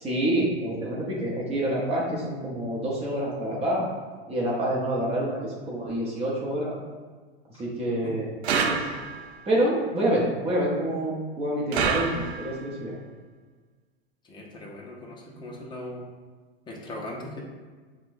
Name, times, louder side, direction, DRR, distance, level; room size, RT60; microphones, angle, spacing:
voice 1, 0.0-3.9 4.3-6.7 7.6-8.3 8.7-8.9 9.5-12.9, right 1 dB, 20° right, -4 dB, 0.8 m, -27 dB
sound 1, 8.4-9.4 11.7-12.7, right 5 dB, 90° right, 0.5 m, -27 dB
voice 2, 14.2-16.1 16.6-17.4, left 1 dB, 15° left, -2 dB, 0.7 m, -39 dB
5.8 x 2.3 x 2.6 m, 1.4 s
hypercardioid pair, 120°, 31 cm